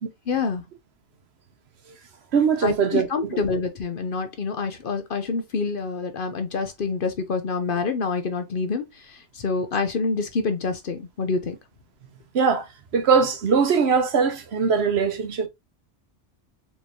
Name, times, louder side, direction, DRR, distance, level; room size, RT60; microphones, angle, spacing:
voice 1, 0.3-0.6 2.6-11.6, left 4 dB, 55° left, 0.7 m, -27 dB
voice 2, 2.3-3.4 12.3-12.7 12.9-15.5, right 5 dB, 65° right, 1.0 m, -21 dB
4.4 x 3.1 x 2.7 m
omnidirectional pair, 1.2 m